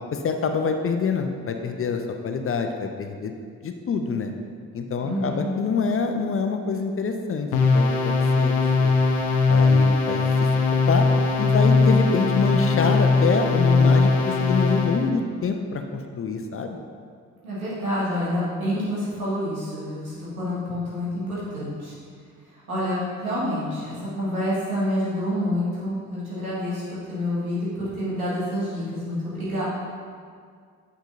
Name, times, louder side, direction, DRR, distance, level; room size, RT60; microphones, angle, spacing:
voice 1, 0.1-3.3 3.6-4.3 4.7-8.9 9.5-10.2 10.9-11.0 11.4-16.8, left 5 dB, 30° left, 5 dB, 0.7 m, -26 dB
voice 2, 5.0-5.5 17.4-21.9 22.5-29.6, left 1 dB, 85° right, -9 dB, 1.8 m, -28 dB
sound 1, 7.5-15.1, left 4 dB, 60° left, 0.9 m, -20 dB
8.9 x 6.8 x 2.6 m, 2.1 s
figure-of-eight pair, 40°, 42 cm